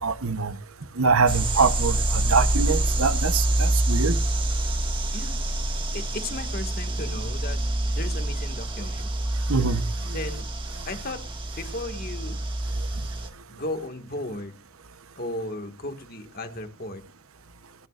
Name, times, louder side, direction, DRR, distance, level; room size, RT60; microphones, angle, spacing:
voice 1, 0.0-0.5 1.0-4.2 9.5-9.8, right 4 dB, 80° right, 1.0 m, -24 dB
sound 1, 1.3-13.3, right 1 dB, 25° right, 1.8 m, -26 dB
voice 2, 5.9-7.6 7.9-9.1 10.0-10.4 10.9-11.3 11.6-12.5 13.5-14.6 15.2-17.0, left 2 dB, 45° left, 1.9 m, -35 dB
28.5 x 10.5 x 2.5 m
head